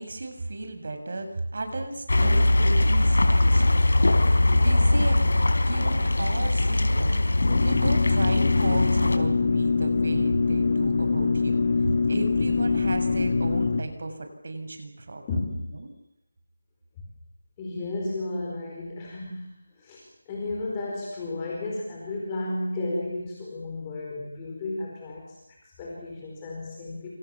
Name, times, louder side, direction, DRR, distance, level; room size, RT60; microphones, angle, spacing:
voice 1, 0.0-3.8 4.1-5.3 5.7-15.2 15.7-15.9, right 2 dB, 50° right, 7 dB, 6.8 m, -34 dB
sound 1, 2.1-9.2, left 2 dB, 75° left, 4.3 m, -21 dB
sound 2, 7.4-13.8, left 4 dB, 40° left, 1.9 m, -24 dB
voice 2, 15.3-15.6 17.0-17.1 17.6-27.1, left 2 dB, 15° left, -2 dB, 4.8 m, -33 dB
28.5 x 27.5 x 7.3 m, 0.82 s
figure-of-eight pair, 170°, 0 cm